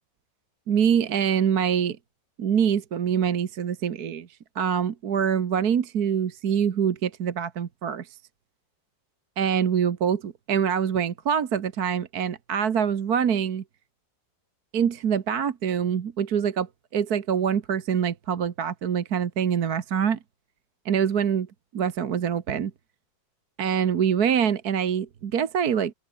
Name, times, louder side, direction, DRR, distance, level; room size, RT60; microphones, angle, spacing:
voice 1, 0.7-2.0 2.4-4.3 4.5-8.2 9.4-13.6 14.7-16.7 16.9-20.2 20.9-21.5 21.7-22.7 23.6-25.9, right 8 dB, 55° right, 1.7 m, -25 dB
omnidirectional pair, 2.1 m